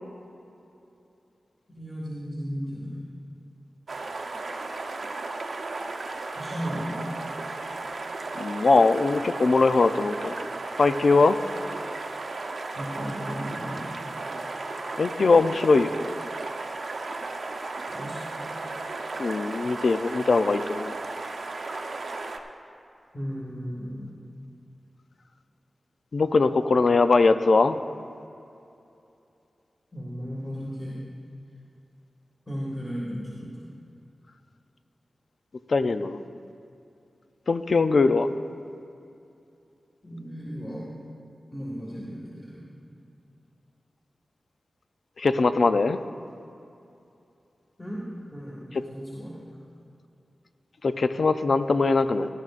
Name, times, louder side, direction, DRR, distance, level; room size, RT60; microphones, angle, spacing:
voice 1, 1.7-3.0 6.4-7.1 12.7-14.1 17.9-18.2 23.1-24.1 29.9-31.0 32.5-33.6 40.0-40.9 41.5-43.0 47.8-49.4, equal, 20° left, -6 dB, 2.0 m, -35 dB
sound 1, 3.9-22.4, right 3 dB, 75° right, 0.8 m, -35 dB
voice 2, 8.4-10.4 10.8-11.4 15.0-15.9 19.2-20.9 26.1-27.8 35.7-36.2 37.5-38.3 45.2-46.0 50.8-52.3, left 3 dB, 65° left, 10 dB, 0.5 m, -21 dB
18.0 x 12.0 x 2.5 m, 2.7 s
wide cardioid pair, 100°, 0 cm